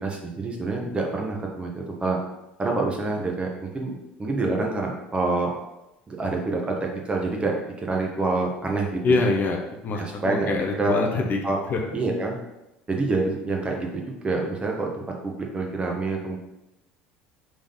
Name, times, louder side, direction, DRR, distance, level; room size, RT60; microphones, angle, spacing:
voice 1, 0.0-2.2 2.6-3.9 4.2-5.5 6.1-7.6 7.9-9.2 9.9-11.0 11.4-11.6 11.9-12.4 12.9-13.9 14.2-16.4, right 3 dB, 20° right, 0 dB, 1.3 m, -27 dB
voice 2, 9.0-11.4 11.7-11.8, left 3 dB, 35° left, 1 dB, 0.9 m, -24 dB
5.1 x 3.8 x 5.4 m, 0.93 s
figure-of-eight pair, 70°, 6 cm